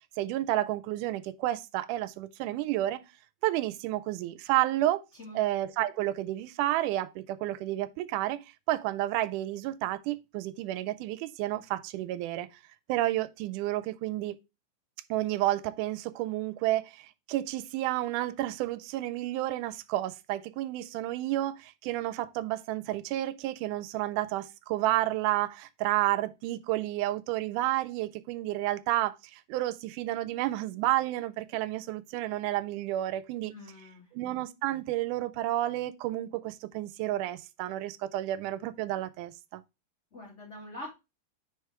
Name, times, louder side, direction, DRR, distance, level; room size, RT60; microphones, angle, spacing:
voice 1, 0.2-3.0 3.4-5.0 5.4-8.4 8.7-12.5 12.9-14.4 15.1-33.5 34.1-39.6, right 15 dB, 90° right, 2.1 m, -31 dB
voice 2, 33.5-34.1 40.1-40.9, left 1 dB, 25° left, 1.8 m, -44 dB
4.9 x 4.8 x 4.4 m
omnidirectional pair, 3.5 m